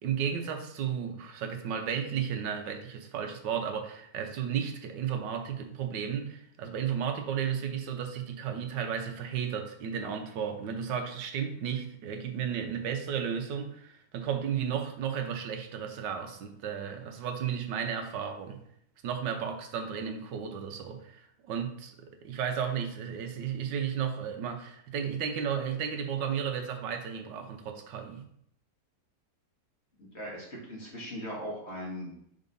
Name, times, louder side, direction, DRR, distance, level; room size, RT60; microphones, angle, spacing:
voice 1, 0.0-18.6 19.0-28.2, right 8 dB, 85° right, 6 dB, 1.5 m, -33 dB
voice 2, 30.0-32.2, equal, 40° left, -4 dB, 2.0 m, -39 dB
5.1 x 4.0 x 5.3 m, 0.71 s
omnidirectional pair, 1.9 m